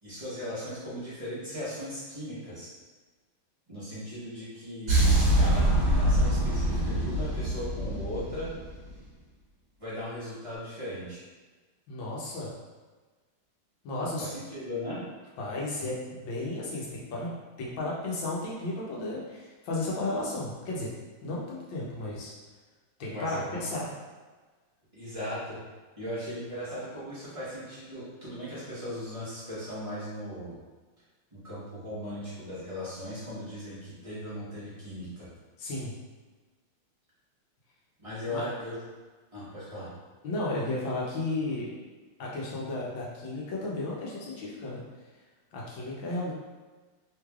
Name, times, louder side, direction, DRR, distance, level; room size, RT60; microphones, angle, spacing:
voice 1, 0.0-2.7 3.7-8.5 9.8-11.2 14.2-15.0 23.1-23.6 24.9-25.6 26.0-30.6 31.3-35.3 38.0-38.8 39.3-39.9, equal, 25° right, -12 dB, 0.7 m, -38 dB
sound 1, 4.9-9.0, right 1 dB, 45° right, 1.3 m, -24 dB
voice 2, 11.9-12.5 13.8-14.3 15.4-17.3 17.6-20.9 21.2-22.3 23.0-23.9 35.6-35.9 38.3-38.4 40.2-41.7 42.2-44.8 45.5-46.3, left 2 dB, 70° left, -4 dB, 1.4 m, -33 dB
3.6 x 3.1 x 2.3 m, 1.3 s
omnidirectional pair, 2.3 m